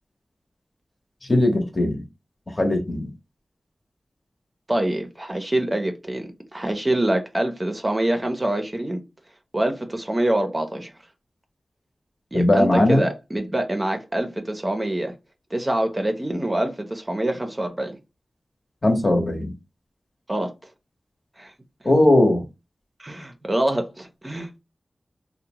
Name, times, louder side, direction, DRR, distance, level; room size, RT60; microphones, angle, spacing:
voice 1, 1.2-2.0 2.5-3.1 12.3-13.0 18.8-19.5 21.8-22.4, left 1 dB, 35° left, 0.9 m, -19 dB
voice 2, 4.7-9.0 9.5-10.9 12.3-15.1 15.5-18.0 20.3-20.5 21.4-21.5 23.0-24.6, right 1 dB, 25° right, 0.6 m, -25 dB
2.7 x 2.0 x 2.9 m
cardioid pair, 55°, 0 cm